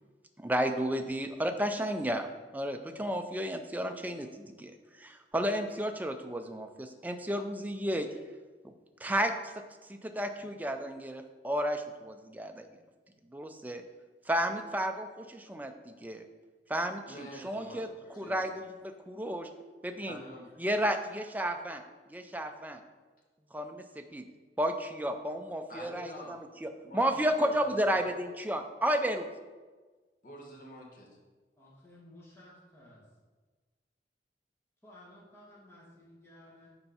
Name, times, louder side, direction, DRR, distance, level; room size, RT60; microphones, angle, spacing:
voice 1, 0.4-2.3 2.5-4.7 5.0-8.1 8.6-8.7 9.0-9.6 9.9-12.7 13.3-13.8 14.3-16.2 16.7-17.9 18.2-19.5 19.8-20.2 20.6-21.8 22.1-22.8 23.5-24.2 24.6-29.3, equal, 10° right, 6 dB, 0.4 m, -32 dB
voice 2, 17.0-18.4 20.0-20.6 25.7-26.4 26.8-27.1 27.4-28.1 30.2-31.1, equal, 50° left, -1 dB, 1.6 m, -47 dB
voice 3, 31.6-33.0 34.8-36.7, left 1 dB, 15° left, -7 dB, 2.1 m, -55 dB
6.8 x 4.5 x 5.6 m, 1.3 s
head